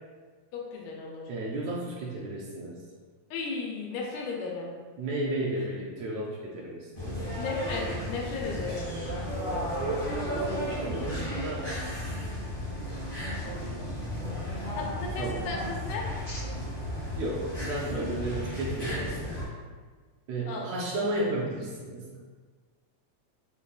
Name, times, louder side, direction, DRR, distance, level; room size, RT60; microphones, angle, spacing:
voice 1, 0.5-1.3 3.3-4.7 7.4-8.9 14.7-16.0 20.5-21.1, left 4 dB, 85° left, -1 dB, 2.0 m, -35 dB
voice 2, 1.3-2.8 5.0-7.3 10.3-11.7 15.2-15.4 17.1-19.2 20.3-22.2, right 1 dB, 80° right, -4 dB, 1.6 m, -33 dB
sound 1, 6.9-19.4, equal, 30° left, 0.6 m, -34 dB
5.3 x 2.2 x 2.3 m, 1.5 s
omnidirectional pair, 3.3 m